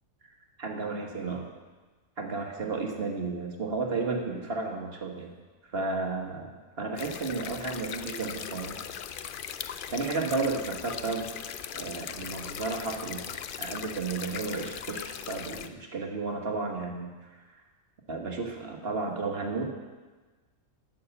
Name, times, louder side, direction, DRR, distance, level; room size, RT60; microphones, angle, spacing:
voice 1, 0.6-1.5 2.2-5.3 5.6-8.8 9.9-11.3 11.7-13.2 13.6-17.4 18.1-19.7, right 3 dB, 50° right, 2 dB, 1.5 m, -33 dB
sound 1, 7.0-15.7, left 8 dB, 65° left, 0.5 m, -39 dB
11.0 x 7.0 x 6.9 m, 1.3 s
omnidirectional pair, 1.4 m